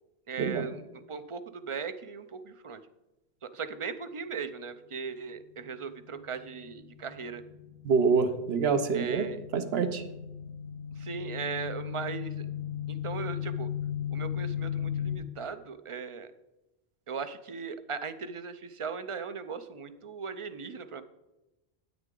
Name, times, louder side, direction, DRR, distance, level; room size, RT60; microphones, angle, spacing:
voice 1, 0.3-0.8 1.1-2.8 3.4-7.4 8.9-9.4 11.0-12.5 12.9-13.7 14.1-16.3 17.1-21.0, right 5 dB, 40° right, 11 dB, 0.5 m, -38 dB
sound 1, 5.5-15.2, left 9 dB, 85° left, 2.1 m, -37 dB
voice 2, 7.8-9.3 9.5-10.0, right 5 dB, 70° right, 10 dB, 1.1 m, -26 dB
9.6 x 9.2 x 3.8 m, 1.0 s
omnidirectional pair, 1.1 m